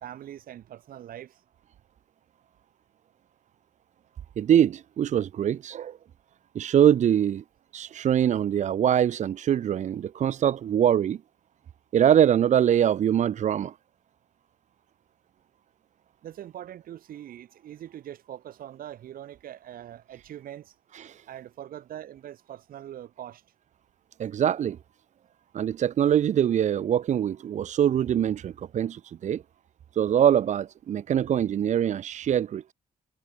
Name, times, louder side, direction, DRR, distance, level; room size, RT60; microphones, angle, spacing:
voice 1, 0.0-1.4 16.2-20.7 21.3-23.4, right 11 dB, 75° right, 2.6 m, -42 dB
voice 2, 4.4-6.0 6.5-7.4 7.7-11.2 11.9-13.7 20.9-21.2 24.2-24.8 25.5-29.4 29.9-32.7, right 9 dB, 55° right, 0.8 m, -23 dB
wide cardioid pair, 155°, 15 cm